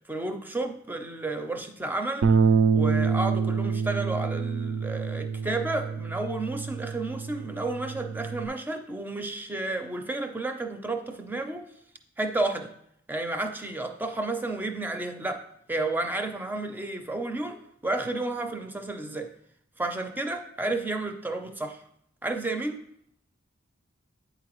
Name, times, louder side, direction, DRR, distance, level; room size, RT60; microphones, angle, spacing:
voice 1, 0.1-2.3 2.7-11.6 12.2-12.7 13.1-17.6 17.8-19.3 19.8-21.8 22.2-22.8, right 2 dB, 10° right, 6 dB, 0.4 m, -31 dB
Bass guitar, 2.2-8.5, right 5 dB, 70° right, 0.4 m, -26 dB
9.0 x 3.9 x 3.0 m, 0.71 s
head